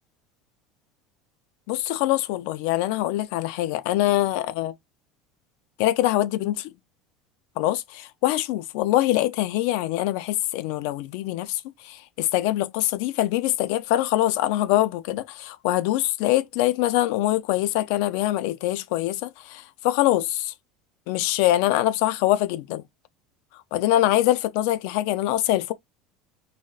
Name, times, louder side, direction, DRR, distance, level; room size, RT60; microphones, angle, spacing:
voice 1, 1.7-4.7 5.8-6.7 7.6-20.5 21.1-22.8 23.7-25.7, left 14 dB, 60° left, 0.3 m, -24 dB
2.3 x 2.1 x 3.8 m
cardioid pair, 175°, 0 cm